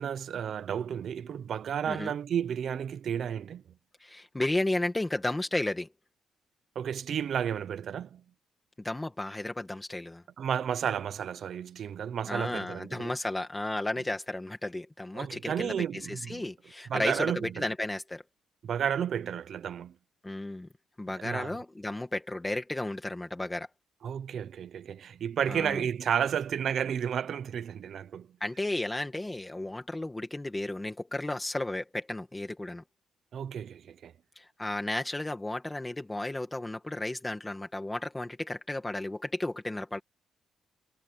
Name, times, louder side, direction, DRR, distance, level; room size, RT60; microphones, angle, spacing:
voice 1, 0.0-3.6 6.7-8.2 10.4-13.1 15.1-16.5 16.9-17.7 18.6-19.9 21.2-21.5 24.0-28.3 33.3-34.1, right 8 dB, 50° right, 0.8 m, -32 dB
voice 2, 4.0-5.9 8.8-10.2 12.3-18.2 20.2-20.7 21.0-23.7 25.5-25.8 28.4-32.8 34.3-40.0, left 2 dB, 10° left, 1.6 m, -33 dB
cardioid pair, 170°, 0 cm